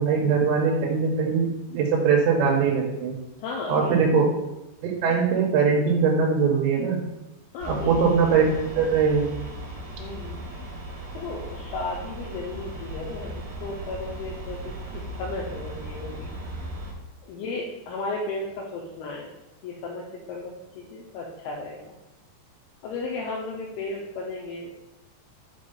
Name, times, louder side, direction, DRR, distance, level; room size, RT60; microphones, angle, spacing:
voice 1, 0.0-3.2 3.7-4.3 4.8-7.0 7.7-9.3, right 5 dB, 85° right, -1 dB, 3.1 m, -21 dB
voice 2, 3.4-4.0 7.5-8.0 10.0-10.4 11.1-16.3 17.2-19.3 19.6-20.0 20.3-21.9 22.8-24.9, left 3 dB, 80° left, -2 dB, 2.4 m, -34 dB
sound 1, 7.6-16.9, right 1 dB, 55° right, 2.0 m, -37 dB
5.8 x 5.4 x 3.8 m, 0.95 s
omnidirectional pair, 5.0 m